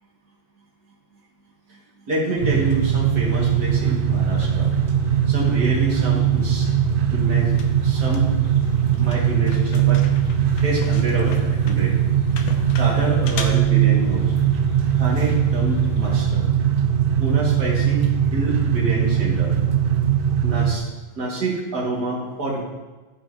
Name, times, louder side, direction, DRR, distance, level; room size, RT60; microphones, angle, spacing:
voice 1, 2.1-4.7 5.3-6.7 7.1-7.5 7.8-8.3 9.0-10.0 10.6-11.9 12.7-14.3 15.0-16.5 17.2-19.5 20.4-20.8 21.2-22.6, right 2 dB, 35° right, -4 dB, 2.3 m, -27 dB
sound 1, 2.4-16.4, left 2 dB, 85° left, 1.1 m, -37 dB
sound 2, 2.4-20.8, right 9 dB, 75° right, 1.4 m, -20 dB
15.5 x 5.6 x 2.9 m, 1.2 s
omnidirectional pair, 3.4 m